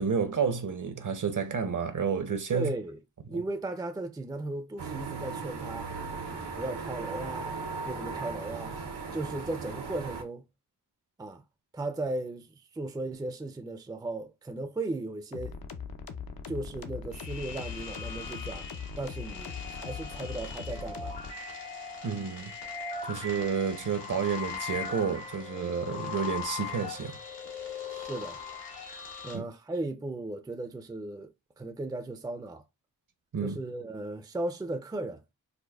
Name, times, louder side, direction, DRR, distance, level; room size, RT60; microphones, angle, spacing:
voice 1, 0.0-2.7 3.3-3.4 22.0-22.5 23.0-27.1 29.3-29.4 33.3-33.6, right 6 dB, 50° right, 0.7 m, -30 dB
voice 2, 2.5-3.0 3.3-5.9 6.2-8.8 9.1-10.5 11.2-11.4 11.7-15.6 16.5-18.7 19.0-21.2 27.9-28.4 29.2-32.6 33.4-35.2, right 2 dB, 10° right, 0.4 m, -36 dB
sound 1, 4.8-10.2, right 4 dB, 80° right, 0.9 m, -37 dB
sound 2, 15.3-21.3, left 6 dB, 60° left, 0.6 m, -40 dB
sound 3, 17.1-29.4, left 5 dB, 85° left, 1.1 m, -40 dB
5.0 x 2.1 x 2.3 m
cardioid pair, 55°, 40 cm